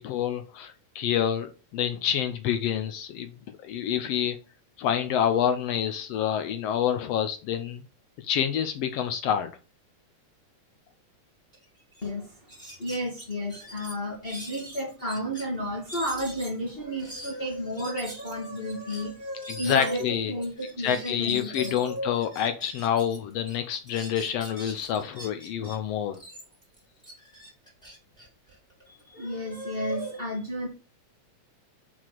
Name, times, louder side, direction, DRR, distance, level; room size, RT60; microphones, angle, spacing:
voice 1, 0.0-3.3 3.6-4.4 4.8-7.8 8.2-9.5 19.5-20.3 20.8-26.2, left 9 dB, 75° left, 1.5 m, -27 dB
sound 1, 11.5-11.6 11.9-12.1 12.5-15.4 15.9-23.2 23.5-25.8 26.1-29.0, right 1 dB, ahead, 3.3 m, -44 dB
voice 2, 12.0-12.4 12.8-22.2 28.9-30.7, equal, 20° left, 1.7 m, -32 dB
5.9 x 4.8 x 6.0 m
omnidirectional pair, 3.6 m